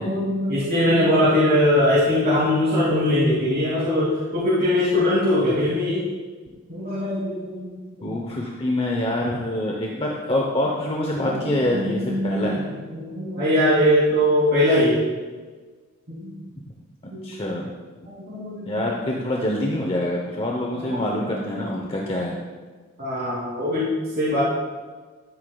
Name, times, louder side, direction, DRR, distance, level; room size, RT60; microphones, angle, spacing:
voice 1, 0.0-6.0 6.7-8.2 11.2-12.5 12.9-15.0 16.1-16.3 17.1-17.2 18.1-18.7 20.8-21.6 23.0-23.9 24.2-24.4, left 1 dB, 50° right, -10 dB, 2.7 m, -21 dB
voice 2, 8.0-12.6 17.0-17.7 18.7-22.4, left 1 dB, 25° left, -1 dB, 0.8 m, -25 dB
13.0 x 8.2 x 2.3 m, 1.4 s
head